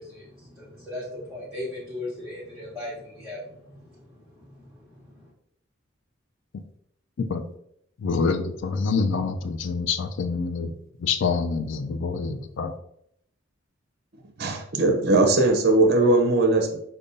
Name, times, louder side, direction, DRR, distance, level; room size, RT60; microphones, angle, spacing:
voice 1, 0.0-5.3, left 1 dB, 5° right, 1.0 m, -38 dB
voice 2, 8.0-10.7 11.0-12.7, left 4 dB, 65° left, 0.4 m, -26 dB
voice 3, 14.4-16.8, right 2 dB, 50° right, 0.6 m, -19 dB
5.3 x 2.2 x 2.5 m
head